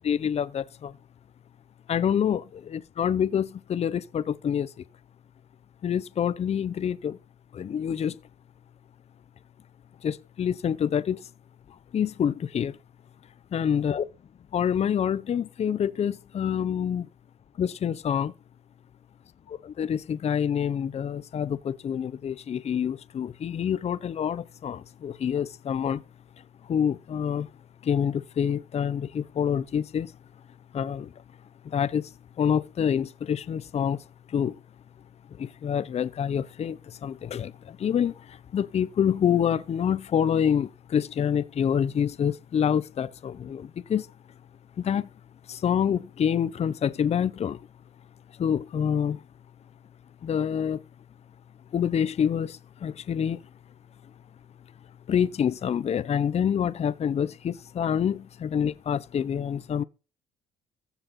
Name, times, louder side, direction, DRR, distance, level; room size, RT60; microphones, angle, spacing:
voice 1, 0.0-0.9 1.9-4.7 5.8-7.2 7.5-8.1 10.0-11.2 11.9-12.7 13.5-14.0 14.5-17.1 17.6-18.3 19.6-26.0 26.7-27.5 27.9-30.1 30.7-31.1 31.7-32.0 32.4-34.0 34.3-34.5 35.4-36.8 37.0-37.5 37.8-38.1 38.5-44.0 44.8-45.1 45.5-47.6 48.4-49.2 50.2-50.8 51.7-52.6 52.8-53.4 55.1-59.8, left 8 dB, 40° left, 0.8 m, -26 dB
15.0 x 5.9 x 5.8 m
cardioid pair, 110°, 17 cm